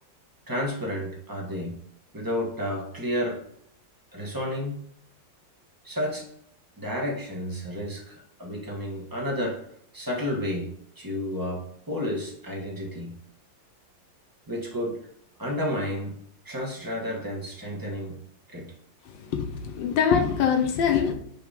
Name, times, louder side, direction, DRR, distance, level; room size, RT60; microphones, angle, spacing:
voice 1, 0.5-1.8 2.1-3.4 4.1-4.8 5.8-6.3 6.8-9.6 9.9-13.2 14.5-15.0 15.4-16.2 16.4-18.2 18.5-18.7, left 1 dB, 10° right, 1.3 m, -31 dB
voice 2, 19.3-21.1, left 7 dB, 75° left, 1.6 m, -23 dB
5.1 x 3.7 x 5.1 m
omnidirectional pair, 2.0 m